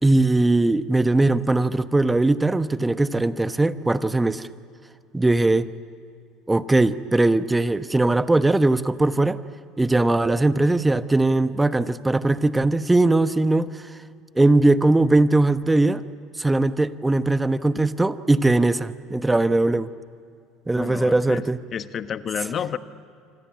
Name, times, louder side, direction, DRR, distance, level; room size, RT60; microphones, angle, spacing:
voice 1, 0.0-4.5 5.1-5.7 6.5-9.4 9.8-13.7 14.4-16.0 16.4-19.9 20.7-21.6, right 2 dB, 10° right, 12 dB, 1.1 m, -20 dB
voice 2, 20.7-22.8, left 8 dB, 45° left, 11 dB, 1.3 m, -31 dB
26.0 x 25.5 x 8.7 m, 2.3 s
hypercardioid pair, 70°, 0 cm